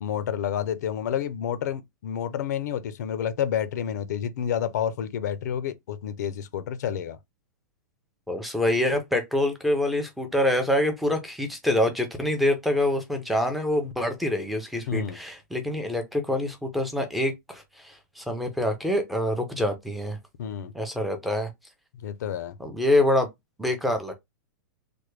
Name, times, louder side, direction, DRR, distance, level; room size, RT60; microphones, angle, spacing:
voice 1, 0.0-7.2 14.9-15.2 20.4-20.7 22.0-22.6, left 9 dB, 60° left, 0.5 m, -29 dB
voice 2, 8.3-20.2 20.7-21.5 22.6-23.3 23.6-24.1, left 1 dB, ahead, 0.5 m, -26 dB
3.3 x 2.1 x 3.1 m
supercardioid pair, 160°, 10 cm